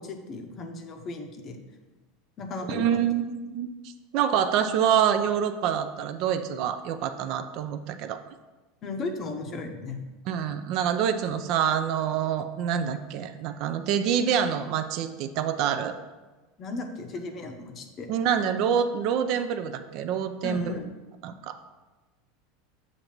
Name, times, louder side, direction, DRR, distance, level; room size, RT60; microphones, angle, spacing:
voice 1, 0.0-1.6 2.4-2.8 8.8-10.0 16.6-18.1 20.4-20.9, left 3 dB, 30° left, 5 dB, 0.6 m, -35 dB
voice 2, 2.7-3.7 4.1-8.2 10.3-16.0 18.1-20.7 21.2-21.6, right 8 dB, 50° right, 9 dB, 0.3 m, -26 dB
7.2 x 2.6 x 5.8 m, 1.2 s
supercardioid pair, 155°, 0 cm